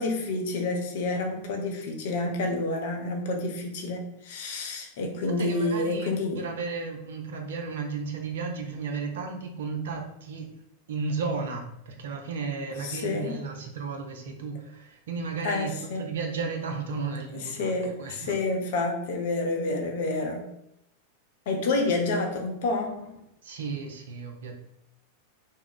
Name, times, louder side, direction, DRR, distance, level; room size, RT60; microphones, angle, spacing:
voice 1, 0.0-6.4 12.8-13.4 15.4-16.0 17.6-20.4 21.5-23.1, left 2 dB, 55° left, 3 dB, 0.5 m, -29 dB
voice 2, 5.4-10.5 10.9-18.3 23.4-24.6, right 4 dB, 60° right, 3 dB, 0.4 m, -34 dB
2.3 x 2.1 x 3.6 m, 0.77 s
figure-of-eight pair, 90°, 0 cm